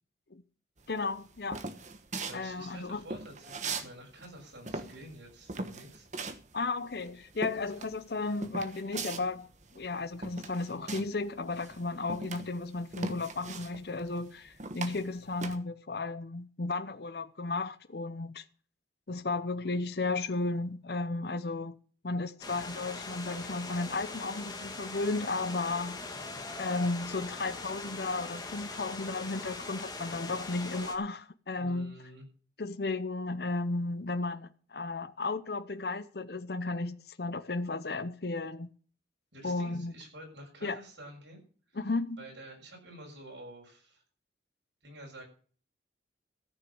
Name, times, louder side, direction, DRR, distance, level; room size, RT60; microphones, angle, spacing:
voice 1, 0.9-1.6 2.3-3.0 6.5-9.5 9.7-18.4 19.1-21.7 22.0-26.1 26.6-32.0 32.6-38.7 39.4-39.9 40.6-40.8 41.7-42.2, left 3 dB, 60° left, 0.7 m, -34 dB
sound 1, 0.9-3.9 4.2-11.3 11.5-15.6, right 3 dB, 40° right, 1.2 m, -40 dB
voice 2, 2.3-6.1 26.3-26.4 31.6-32.2 39.3-41.4 41.7-41.8 42.2-44.0 44.8-45.2, right 1 dB, 80° right, 7.0 m, -49 dB
sound 2, 22.4-31.0, left 3 dB, 20° left, 1.8 m, -41 dB
14.5 x 6.6 x 8.6 m
head